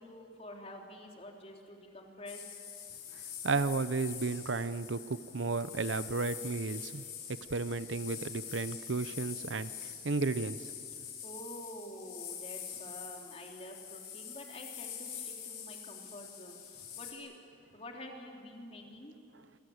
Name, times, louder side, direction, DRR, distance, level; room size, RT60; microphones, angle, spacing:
voice 1, 0.0-2.6 10.9-17.4 17.7-19.1, left 1 dB, 35° left, 1 dB, 3.5 m, -48 dB
sound 1, 2.3-17.1, left 8 dB, 50° left, 5.1 m, -45 dB
voice 2, 3.4-7.0 7.5-10.7 11.0-11.1, right 3 dB, 85° right, 14 dB, 0.8 m, -33 dB
28.0 x 25.0 x 8.0 m, 2.4 s
head